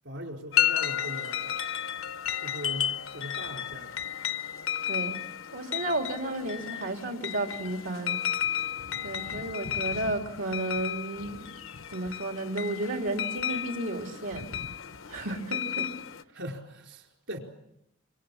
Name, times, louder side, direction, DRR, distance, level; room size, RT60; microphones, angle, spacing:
voice 1, 0.0-1.6 2.4-3.9 16.3-17.4, equal, 70° right, 2 dB, 4.5 m, -40 dB
sound 1, 0.5-16.2, left 10 dB, 90° left, 0.9 m, -33 dB
voice 2, 5.5-8.2 9.0-11.5 11.9-14.5 15.1-15.9, right 2 dB, 90° right, 3 dB, 3.1 m, -32 dB
27.0 x 24.5 x 7.2 m, 0.82 s
head